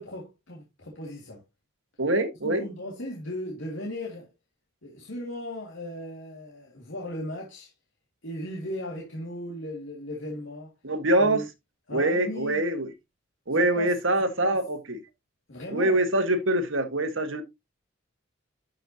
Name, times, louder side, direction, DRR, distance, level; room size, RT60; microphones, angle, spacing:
voice 1, 0.0-1.4 2.4-4.3 4.8-7.7 8.2-10.7 11.2-11.5 11.9-12.6 13.5-13.9 14.2-14.6 15.5-16.0, left 1 dB, 70° left, 2.2 m, -37 dB
voice 2, 2.0-2.7 10.8-11.4 11.9-12.9 13.5-15.0 15.7-17.4, right 1 dB, 70° right, 1.6 m, -24 dB
12.0 x 5.7 x 2.8 m
head